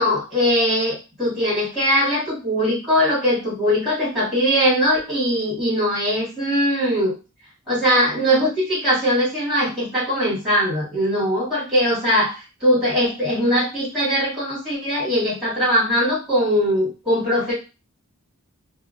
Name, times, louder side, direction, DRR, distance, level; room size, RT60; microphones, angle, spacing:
voice 1, 0.0-7.1 7.7-17.5, equal, ahead, -7 dB, 1.6 m, -21 dB
3.5 x 2.1 x 2.4 m, 0.30 s
head